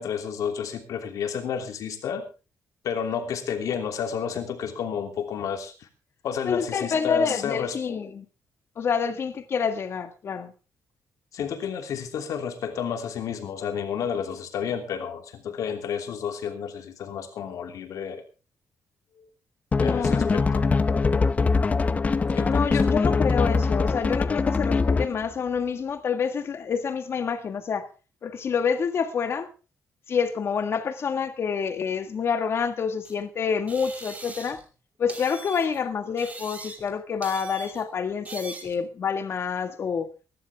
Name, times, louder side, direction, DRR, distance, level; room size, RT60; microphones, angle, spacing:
voice 1, 0.0-2.2 2.8-5.9 6.2-7.8 11.3-18.2 19.8-20.6 22.4-23.0, left 7 dB, 75° left, 2.9 m, -31 dB
voice 2, 6.4-8.3 8.8-10.5 19.2-19.3 19.8-20.4 22.5-27.9 28.2-29.5 30.1-34.6 35.0-40.1, left 6 dB, 45° left, 1.7 m, -27 dB
sound 1, 19.7-25.2, left 4 dB, 25° left, 0.7 m, -22 dB
sound 2, 33.0-33.1 33.7-34.7 35.1-35.8 36.2-36.9 37.2-37.8 38.2-38.8, right 3 dB, 25° right, 2.8 m, -41 dB
22.5 x 12.0 x 3.5 m
wide cardioid pair, 150°, 6 cm